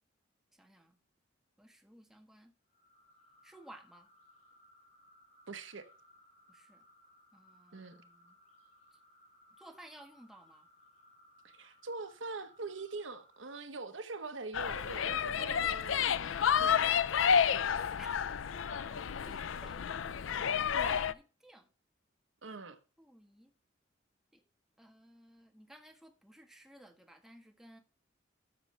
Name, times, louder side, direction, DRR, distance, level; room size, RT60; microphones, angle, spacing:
voice 1, 0.5-1.0 1.6-2.5 3.4-4.1 6.5-6.8 7.3-8.4 8.9-9.0 9.6-10.7 18.0-18.2 19.2-21.7 23.0-23.5 24.3-24.4 24.8-27.8, right 1 dB, ahead, 1.4 m, -57 dB
sound 1, 2.7-13.6, left 1 dB, 40° left, 4.0 m, -64 dB
voice 2, 5.5-5.9 7.7-8.0 11.4-16.8 17.5-17.7 20.7-21.1 22.4-22.8, right 3 dB, 75° right, 1.0 m, -43 dB
sound 2, 14.5-21.1, left 7 dB, 85° left, 0.5 m, -30 dB
12.5 x 6.6 x 3.3 m
head